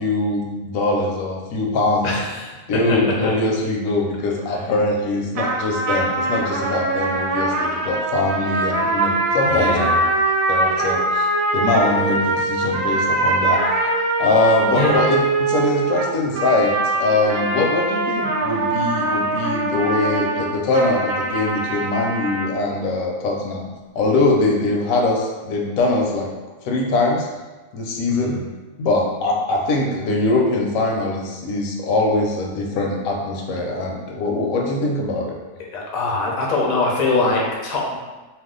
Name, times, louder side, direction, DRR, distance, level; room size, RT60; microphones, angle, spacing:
voice 1, 0.0-2.1 2.7-9.8 10.5-13.6 14.2-23.7 23.9-26.3 26.6-27.3 27.7-28.4 28.8-35.4, left 2 dB, 80° left, 0 dB, 1.0 m, -22 dB
voice 2, 2.0-2.5 2.9-3.3 4.5-4.6 9.5-10.1 14.7-15.0 28.1-28.5 35.7-38.0, left 3 dB, 50° left, -3 dB, 0.5 m, -23 dB
sound 1, 5.3-22.5, right 2 dB, 85° right, 1.0 m, -22 dB
2.5 x 2.2 x 3.6 m, 1.2 s
omnidirectional pair, 1.4 m